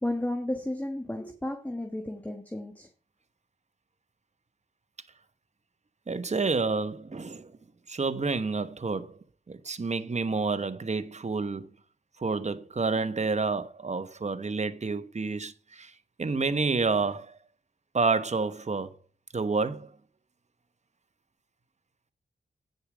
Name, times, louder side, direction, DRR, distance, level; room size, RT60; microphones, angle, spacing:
voice 1, 0.0-2.9, left 1 dB, 10° left, 1.4 m, -33 dB
voice 2, 6.1-7.5 7.9-9.2 9.5-11.7 12.2-15.9 16.2-17.4 17.9-18.9 19.3-19.9, right 4 dB, 35° right, 1.1 m, -29 dB
9.7 x 6.7 x 5.0 m
cardioid pair, 60°, 19 cm